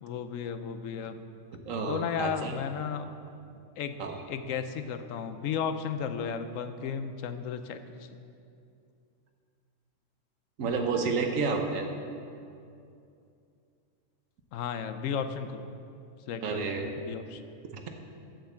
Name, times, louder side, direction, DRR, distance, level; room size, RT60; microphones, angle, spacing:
voice 1, 0.0-1.2 1.9-3.1 3.8-4.0 4.3-8.2 14.5-15.7 16.3-17.4, left 7 dB, 85° left, 9 dB, 1.0 m, -34 dB
voice 2, 1.7-2.6 4.0-4.2 10.6-11.9 16.4-16.8, right 4 dB, 85° right, 4 dB, 1.3 m, -30 dB
7.9 x 7.5 x 7.0 m, 2.5 s
omnidirectional pair, 1.3 m